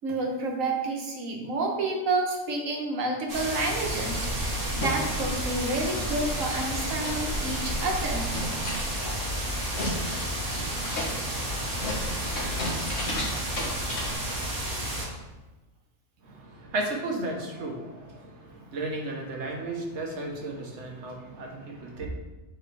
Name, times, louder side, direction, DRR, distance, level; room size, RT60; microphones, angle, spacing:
voice 1, 0.0-8.3, right 2 dB, 80° right, 0 dB, 1.4 m, -29 dB
sound 1, 3.3-15.0, right 1 dB, 45° right, 1.5 m, -32 dB
sound 2, 3.8-14.2, equal, 75° left, 1.7 m, -35 dB
voice 2, 16.3-22.1, right 2 dB, 60° right, 0 dB, 1.3 m, -34 dB
7.2 x 4.4 x 3.3 m, 1.1 s
omnidirectional pair, 1.4 m